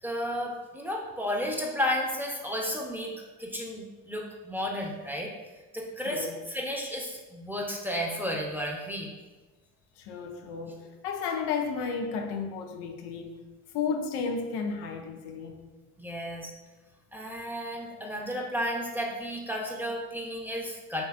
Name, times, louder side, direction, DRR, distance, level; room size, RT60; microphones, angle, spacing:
voice 1, 0.0-3.1 3.4-5.3 5.7-9.1 16.0-16.5 17.1-21.1, equal, 5° right, -1 dB, 0.7 m, -33 dB
voice 2, 6.1-6.4 10.0-13.3 13.7-15.6, left 5 dB, 70° left, 4 dB, 0.5 m, -33 dB
4.3 x 3.1 x 2.4 m, 1.2 s
hypercardioid pair, 60°, 41 cm